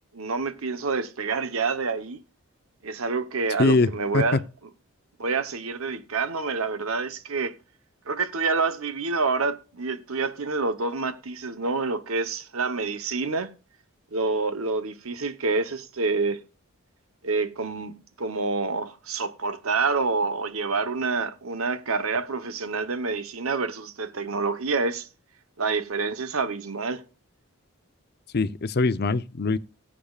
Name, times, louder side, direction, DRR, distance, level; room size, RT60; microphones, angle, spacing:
voice 1, 0.1-2.2 2.8-4.4 5.2-7.5 8.1-13.5 14.1-16.4 17.2-25.1 25.6-27.0, right 4 dB, 75° right, 1.0 m, -27 dB
voice 2, 28.3-29.6, left 3 dB, 50° left, 0.6 m, -22 dB
18.0 x 8.6 x 2.4 m
head